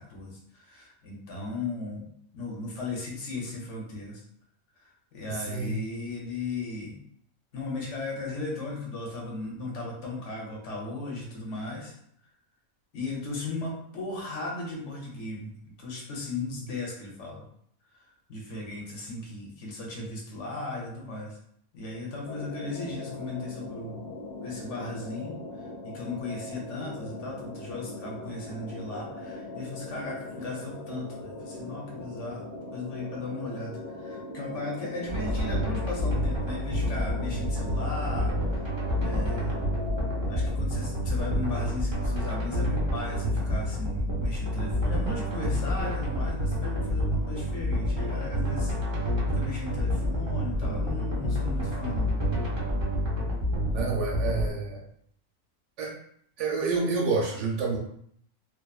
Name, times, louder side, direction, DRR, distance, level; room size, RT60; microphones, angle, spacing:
voice 1, 0.0-4.2 4.8-7.0 7.5-12.0 12.9-17.5 17.9-21.4 21.7-24.0 24.4-32.4 32.7-38.7 39.0-39.7 40.3-52.2, left 3 dB, 65° left, -2 dB, 0.9 m, -37 dB
voice 2, 5.3-5.8 53.7-54.8 55.8-55.9 56.4-57.8, right 4 dB, 70° right, -1 dB, 0.8 m, -28 dB
sound 1, 22.2-40.6, left 2 dB, 20° left, 0.6 m, -40 dB
sound 2, 35.1-54.5, equal, 45° right, 0.3 m, -28 dB
2.5 x 2.3 x 2.2 m, 0.67 s
omnidirectional pair, 1.4 m